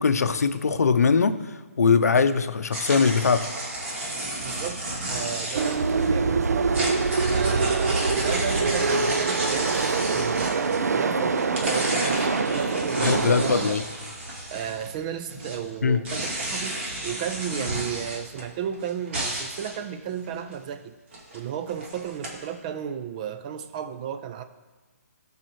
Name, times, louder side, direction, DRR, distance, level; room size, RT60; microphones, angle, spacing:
voice 1, 0.0-1.4 1.8-3.5 13.0-13.8 15.8-16.0, left 5 dB, 80° left, 11 dB, 0.6 m, -21 dB
sound 1, 2.7-6.1 6.6-11.0 11.3-15.0 15.3-19.8 20.2-20.5 21.1-21.4 21.7-22.3, right 1 dB, 50° right, 2.4 m, -32 dB
voice 2, 4.4-6.9 7.3-13.8 14.5-20.9 21.3-24.4, right 8 dB, 30° right, 10 dB, 0.4 m, -34 dB
sound 2, 5.5-13.7, right 4 dB, 80° right, 0.5 m, -24 dB
15.5 x 5.5 x 3.1 m, 1.3 s
hypercardioid pair, 150°, 8 cm